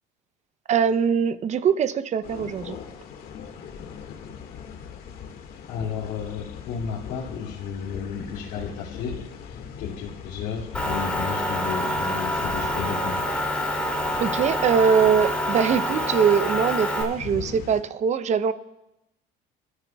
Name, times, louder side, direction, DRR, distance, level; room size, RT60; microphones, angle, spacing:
voice 1, 0.7-2.8 14.2-18.5, right 7 dB, 40° right, 14 dB, 0.7 m, -22 dB
sound 1, 2.2-17.8, left 7 dB, 55° left, 1.8 m, -40 dB
voice 2, 5.7-9.2 9.4-13.2, left 6 dB, 75° left, -6 dB, 2.5 m, -33 dB
Motor vehicle (road) / Engine, 10.7-17.0, equal, 5° left, 2.7 m, -27 dB
23.0 x 13.0 x 2.3 m, 0.92 s
cardioid pair, 110°, 18 cm